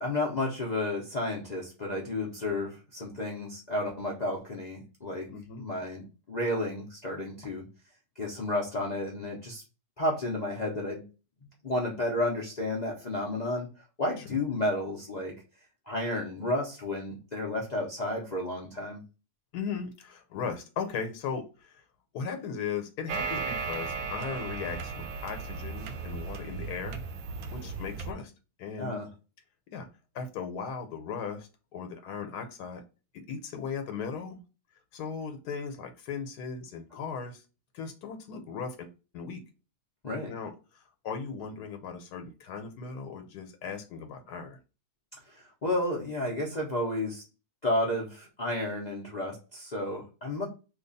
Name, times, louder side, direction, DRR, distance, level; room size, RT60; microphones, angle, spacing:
voice 1, 0.0-5.3 5.6-7.6 8.2-9.6 10.0-11.0 11.6-13.7 14.0-15.3 15.9-19.0 28.8-29.1 40.0-40.3 45.3-47.2 47.6-50.4, left 1 dB, 45° left, -3 dB, 0.5 m, -32 dB
voice 2, 5.3-5.7 14.3-14.4 19.5-21.8 22.1-27.0 27.5-28.3 28.6-29.0 29.7-29.9 30.1-32.8 33.1-34.4 34.9-37.4 37.7-38.9 39.1-39.4 40.2-44.6, left 6 dB, 85° left, 6 dB, 1.2 m, -37 dB
sound 1, 23.1-28.1, right 5 dB, 75° right, 1.0 m, -36 dB
3.1 x 2.3 x 3.9 m, 0.32 s
omnidirectional pair, 1.7 m